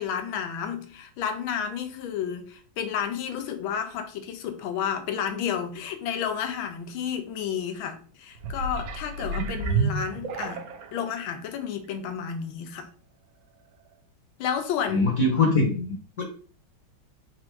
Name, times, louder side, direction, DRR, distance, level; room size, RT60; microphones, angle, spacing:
voice 1, 0.0-10.6 10.9-12.9 14.4-15.1, left 8 dB, 80° left, 1.5 m, -31 dB
sound 1, 8.4-11.0 11.6-11.7, right 4 dB, 75° right, 1.4 m, -29 dB
voice 2, 14.9-16.2, left 2 dB, 50° left, 1.2 m, -23 dB
4.5 x 2.5 x 4.4 m
omnidirectional pair, 2.2 m